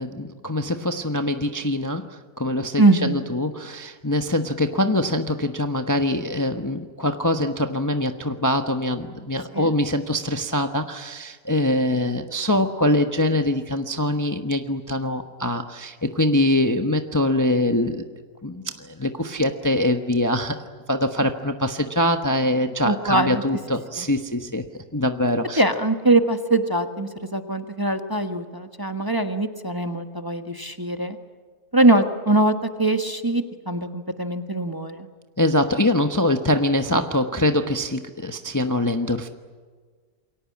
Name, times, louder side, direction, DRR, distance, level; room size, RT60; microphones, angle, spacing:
voice 1, 0.0-18.0 18.4-20.6 20.9-24.6 24.9-25.6 35.4-39.3, left 1 dB, 15° left, 6 dB, 1.0 m, -23 dB
voice 2, 2.8-3.2 9.5-9.7 22.8-23.4 24.0-24.1 25.6-31.2 31.7-35.1, right 2 dB, 15° right, 6 dB, 1.3 m, -22 dB
28.5 x 23.0 x 8.5 m, 1.5 s
omnidirectional pair, 1.5 m